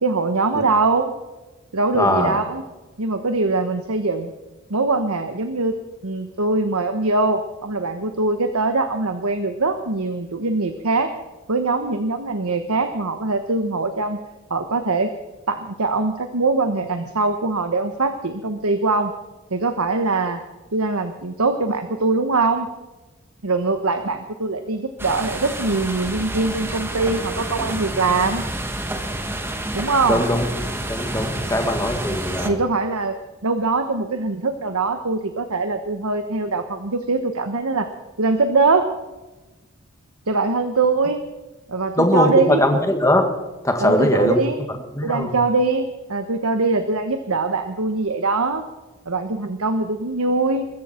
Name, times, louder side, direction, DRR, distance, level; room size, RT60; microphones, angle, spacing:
voice 1, 0.0-1.1 1.7-2.6 3.0-4.3 4.7-5.7 6.0-11.1 11.5-14.2 14.5-15.1 15.5-19.1 19.5-20.4 20.7-22.7 23.4-28.4 29.7-30.2 32.4-33.2 33.4-37.9 38.2-38.9 40.3-41.2 41.7-42.6 43.8-44.6 45.0-48.6 49.1-50.7, right 3 dB, 80° right, 7 dB, 1.2 m, -22 dB
voice 2, 1.9-2.4 30.1-32.6 42.0-43.3 43.6-44.4 45.0-45.3, left 1 dB, 15° left, 4 dB, 1.9 m, -20 dB
sound 1, 25.0-32.5, right 1 dB, 10° right, 1.3 m, -29 dB
22.5 x 14.0 x 4.4 m, 1.1 s
head